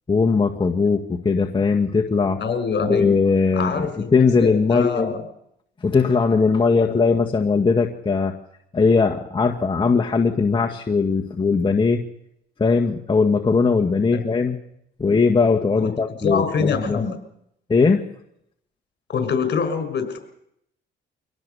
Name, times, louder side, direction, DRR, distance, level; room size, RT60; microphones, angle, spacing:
voice 1, 0.1-2.4 2.8-3.7 4.1-5.1 5.8-8.3 8.7-12.0 12.6-14.6 15.0-17.0 17.7-18.0, left 4 dB, 25° left, 1 dB, 1.8 m, -19 dB
voice 2, 2.4-3.1 3.5-5.2 6.8-7.0 14.1-14.2 15.8-15.9 16.2-17.2 19.1-20.2, left 5 dB, 55° left, 8 dB, 5.8 m, -25 dB
24.5 x 18.0 x 7.0 m, 0.75 s
cardioid pair, 90°, 20 cm